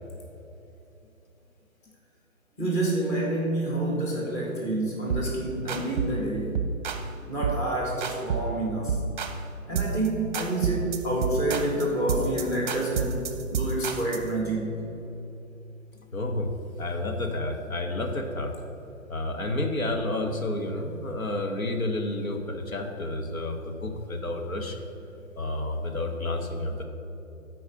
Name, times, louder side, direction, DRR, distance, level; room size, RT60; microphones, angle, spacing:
voice 1, 2.6-6.6 7.3-9.0 9.7-14.8, right 1 dB, 10° left, -3 dB, 0.9 m, -28 dB
sound 1, 5.1-5.3 5.7-6.2 6.5-7.1 7.4-7.7 8.0-8.6 8.9-9.4 9.8-10.1 10.3-14.3, right 5 dB, 35° right, 0.7 m, -29 dB
voice 2, 16.1-16.5 16.8-18.5 19.1-24.9 25.4-26.8, left 2 dB, 85° left, 3 dB, 1.5 m, -30 dB
12.5 x 4.7 x 6.0 m, 3.0 s
figure-of-eight pair, 140°, 41 cm